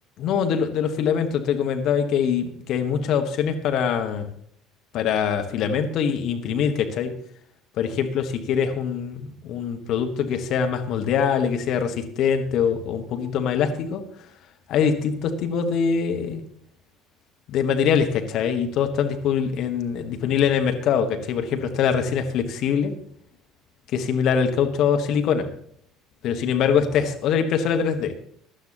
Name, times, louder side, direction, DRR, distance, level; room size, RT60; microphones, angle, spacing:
voice 1, 0.2-4.3 4.9-7.1 7.8-14.0 14.7-16.4 17.5-23.0 23.9-25.5 26.2-28.1, left 7 dB, 50° left, 6 dB, 1.2 m, -23 dB
16.5 x 11.5 x 3.0 m, 0.63 s
figure-of-eight pair, 60°, 0 cm